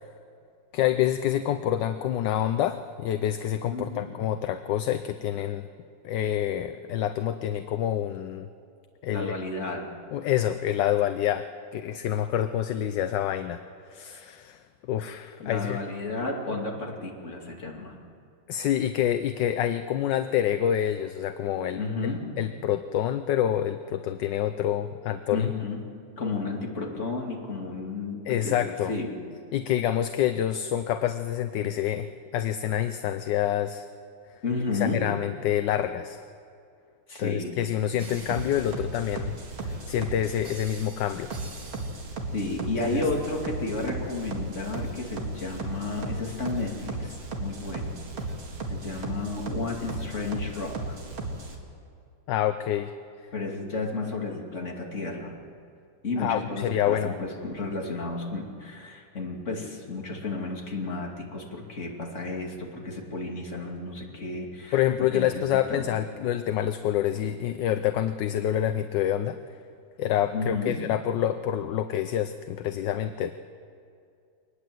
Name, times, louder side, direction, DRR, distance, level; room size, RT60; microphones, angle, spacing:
voice 1, 0.7-5.7 6.0-8.5 9.0-9.4 10.1-11.5 11.7-13.6 13.9-14.6 14.9-15.8 18.5-22.1 22.4-25.5 28.3-28.9 29.5-32.1 32.3-33.9 34.7-36.2 37.2-39.3 39.6-41.3 42.9-43.0 52.3-52.9 56.2-57.1 64.7-69.4 70.0-73.3, left 11 dB, 70° left, 10 dB, 1.3 m, -27 dB
voice 2, 3.7-4.1 9.1-9.9 15.4-18.0 21.8-22.2 25.3-25.8 26.2-28.6 28.9-29.2 34.4-35.0 37.1-37.6 42.3-47.1 47.4-47.9 48.7-50.9 53.3-55.3 56.0-64.8 65.1-65.9 70.3-70.8, left 3 dB, 35° left, 0 dB, 2.9 m, -32 dB
sound 1, 38.0-51.6, right 2 dB, 80° right, 3.1 m, -36 dB
23.0 x 20.0 x 7.8 m, 2.4 s
omnidirectional pair, 2.2 m